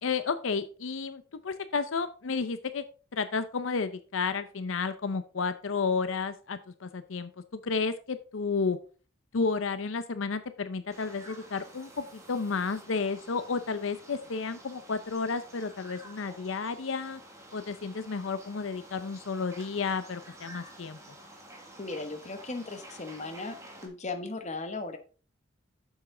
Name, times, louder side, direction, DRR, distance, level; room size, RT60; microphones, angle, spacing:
voice 1, 0.0-2.8 3.1-8.8 9.3-17.2 17.5-21.0, left 4 dB, 85° left, 12 dB, 0.6 m, -32 dB
sound 1, 10.9-23.9, right 1 dB, 15° right, 2.1 m, -50 dB
voice 2, 21.8-23.6 23.8-25.0, left 3 dB, 35° left, 7 dB, 1.1 m, -37 dB
8.0 x 7.2 x 3.8 m, 0.38 s
head